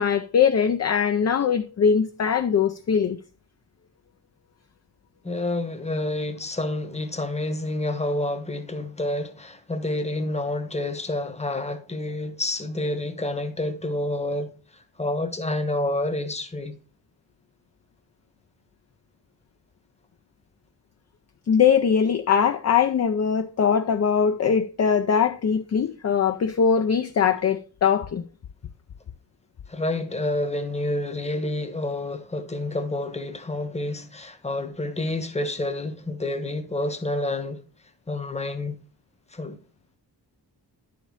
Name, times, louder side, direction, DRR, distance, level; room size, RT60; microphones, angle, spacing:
voice 1, 0.0-3.2 21.5-28.2, left 7 dB, 40° left, 0.5 m, -21 dB
voice 2, 5.2-16.8 29.7-37.6 38.1-38.8 39.3-39.6, left 1 dB, 15° left, 1.0 m, -29 dB
10.5 x 5.1 x 3.9 m
wide cardioid pair, 115°, 42 cm